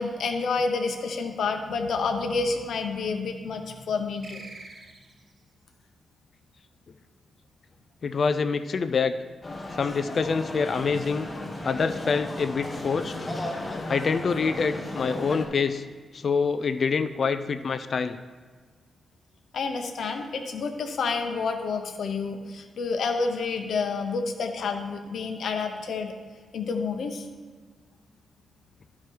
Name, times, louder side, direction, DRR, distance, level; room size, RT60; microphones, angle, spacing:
voice 1, 0.0-4.4 19.5-26.1 26.5-27.3, left 4 dB, 70° left, 5 dB, 0.9 m, -29 dB
sound 1, 4.2-5.4, right 3 dB, 40° right, 0.9 m, -45 dB
voice 2, 8.0-9.2 9.7-11.3 11.6-13.3 13.9-15.8 16.1-18.2, left 5 dB, 50° left, 11 dB, 0.3 m, -26 dB
sound 2, 9.4-15.4, left 2 dB, 25° left, 1.1 m, -35 dB
12.0 x 4.8 x 4.5 m, 1.4 s
cardioid pair, 110°, 0 cm